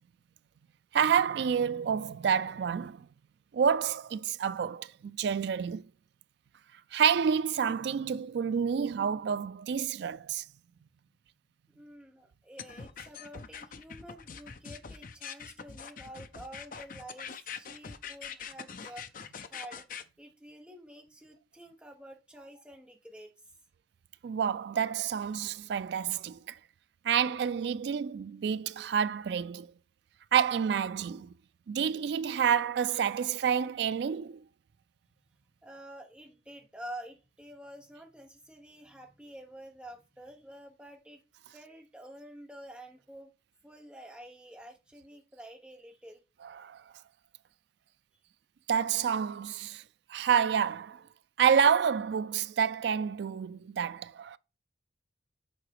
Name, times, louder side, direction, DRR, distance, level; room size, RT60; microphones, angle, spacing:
voice 1, 0.9-3.1 3.5-5.9 6.9-10.4 24.2-26.6 27.0-29.7 30.3-31.3 31.7-34.4 46.4-46.8 48.7-49.8 50.1-51.0 51.4-54.4, right 7 dB, 60° right, 0.3 m, -28 dB
voice 2, 11.7-19.9 20.2-23.3 35.6-41.2 41.5-43.3 43.6-46.2, right 1 dB, 5° right, 1.2 m, -49 dB
sound 1, 12.6-20.0, left 6 dB, 45° left, 0.5 m, -43 dB
7.8 x 3.8 x 4.9 m
head